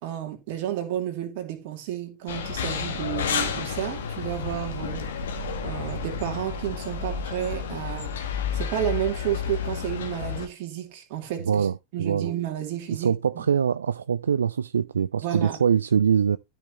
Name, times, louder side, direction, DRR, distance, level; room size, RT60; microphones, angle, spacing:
voice 1, 0.0-8.2 8.5-13.5 15.2-15.6, right 12 dB, 50° right, 2.5 m, -32 dB
sound 1, 2.3-10.5, left 6 dB, 60° left, 1.8 m, -31 dB
voice 2, 12.9-16.4, right 7 dB, 70° right, 0.3 m, -23 dB
13.0 x 5.8 x 2.9 m
figure-of-eight pair, 90°, 0 cm